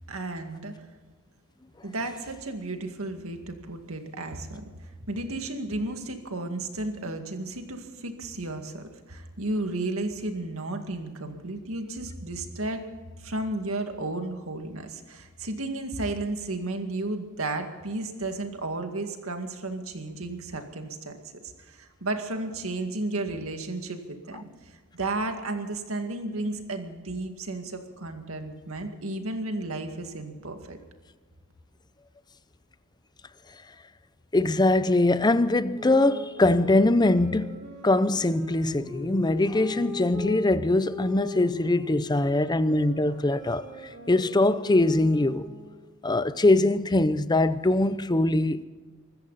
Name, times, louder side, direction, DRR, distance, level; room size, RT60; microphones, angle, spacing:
voice 1, 0.1-0.9 1.8-12.8 13.2-21.2 21.4-30.8, right 2 dB, 70° right, 2.1 m, -33 dB
voice 2, 34.3-37.6 37.8-43.6 44.1-45.5 46.0-48.6, left 2 dB, 20° left, 0.6 m, -22 dB
sound 1, 35.7-40.4 40.8-45.8, left 4 dB, 55° right, 6.5 m, -40 dB
24.5 x 14.0 x 4.1 m
head